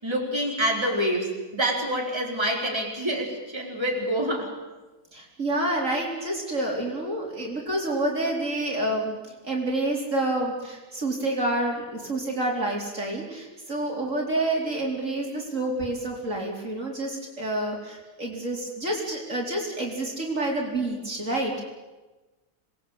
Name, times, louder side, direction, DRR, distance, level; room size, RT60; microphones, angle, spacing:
voice 1, 0.0-4.5, right 1 dB, 15° right, -1 dB, 4.6 m, -27 dB
voice 2, 5.1-9.1 9.4-21.6, right 1 dB, 50° right, -1 dB, 4.6 m, -28 dB
27.5 x 21.0 x 8.7 m, 1.2 s
omnidirectional pair, 1.7 m